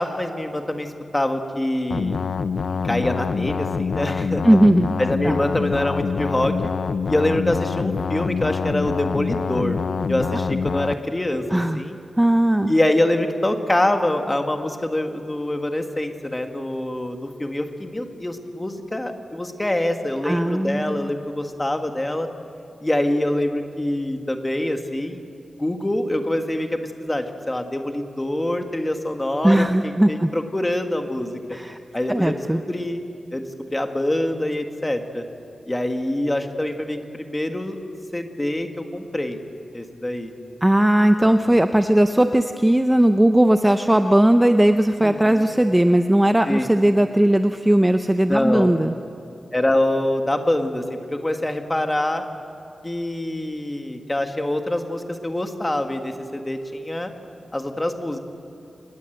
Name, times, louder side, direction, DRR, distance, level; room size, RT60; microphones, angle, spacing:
voice 1, 0.0-2.2 2.8-4.4 5.0-6.5 7.1-9.8 10.1-12.0 12.7-22.3 22.8-25.2 25.6-31.6 31.9-33.0 33.3-35.2 35.7-37.8 38.1-39.4 39.7-40.3 41.2-41.3 45.0-45.5 46.5-46.7 48.3-48.7 49.5-52.2 52.8-57.1 57.5-58.2, left 1 dB, 15° left, 5 dB, 1.7 m, -25 dB
sound 1, 1.9-10.9, left 5 dB, 70° left, 0.7 m, -25 dB
voice 2, 4.4-4.9 5.2-5.4 11.5-11.8 12.2-12.7 20.2-21.1 29.4-30.3 31.5-31.8 32.1-32.6 40.6-48.9, right 1 dB, 10° right, 7 dB, 0.6 m, -18 dB
27.5 x 20.0 x 8.0 m, 2.5 s
wide cardioid pair, 165°, 0 cm